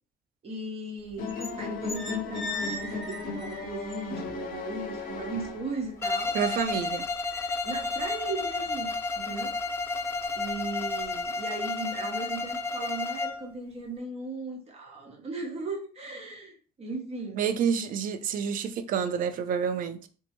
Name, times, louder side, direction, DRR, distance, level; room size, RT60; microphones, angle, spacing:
voice 1, 0.4-6.6 7.6-9.6 10.3-17.5, right 3 dB, 35° right, 0.9 m, -37 dB
sound 1, 1.1-1.5 1.8-4.3 4.7-5.7 6.0-9.1 9.6-9.8 10.2-10.6 11.0-11.2, left 2 dB, ahead, 0.9 m, -40 dB
sound 2, 1.2-6.1, left 4 dB, 55° left, 0.6 m, -36 dB
Bowed string instrument, 6.0-13.5, left 3 dB, 15° left, 0.3 m, -31 dB
voice 2, 6.3-7.1 17.4-20.1, right 7 dB, 55° right, 0.4 m, -28 dB
3.3 x 2.0 x 2.9 m
cardioid pair, 110°, 17 cm